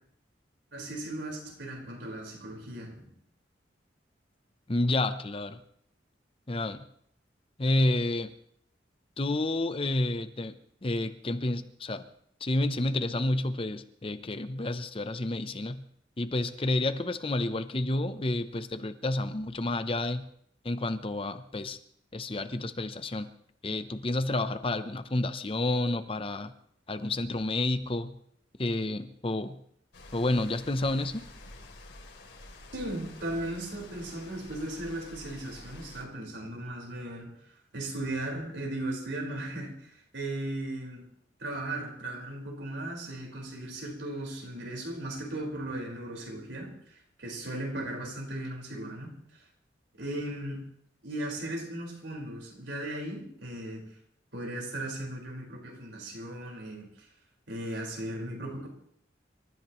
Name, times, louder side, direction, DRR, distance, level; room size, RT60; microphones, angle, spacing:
voice 1, 0.7-3.1 32.7-37.4 37.7-41.0 41.4-49.2 50.0-50.7 51.0-53.8 54.3-57.1 57.5-58.7, right 1 dB, 80° right, 0 dB, 4.9 m, -37 dB
voice 2, 4.7-5.6 6.5-6.9 7.6-8.3 9.2-10.6 10.8-12.0 12.4-15.8 16.2-20.3 20.6-21.8 22.1-23.3 23.6-26.5 26.9-28.2 28.6-29.6 30.1-31.3, left 2 dB, 30° left, 11 dB, 0.7 m, -30 dB
sound 1, 29.9-36.0, left 2 dB, 85° left, 3.2 m, -49 dB
27.5 x 14.0 x 3.1 m, 0.67 s
head